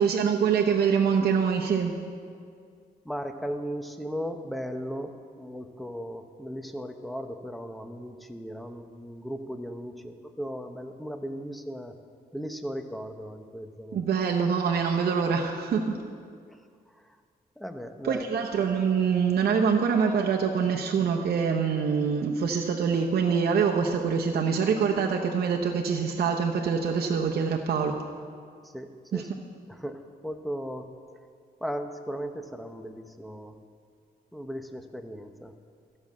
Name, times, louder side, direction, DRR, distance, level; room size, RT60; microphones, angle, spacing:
voice 1, 0.0-2.0 13.9-16.0 18.0-28.0 29.1-29.3, right 6 dB, 70° right, 1 dB, 0.8 m, -25 dB
voice 2, 3.0-11.9 12.3-14.1 17.6-18.3 28.7-29.3 29.7-30.8 31.6-33.5 34.3-35.5, equal, ahead, 7 dB, 0.8 m, -37 dB
14.0 x 5.5 x 7.3 m, 2.1 s
cardioid pair, 90°, 17 cm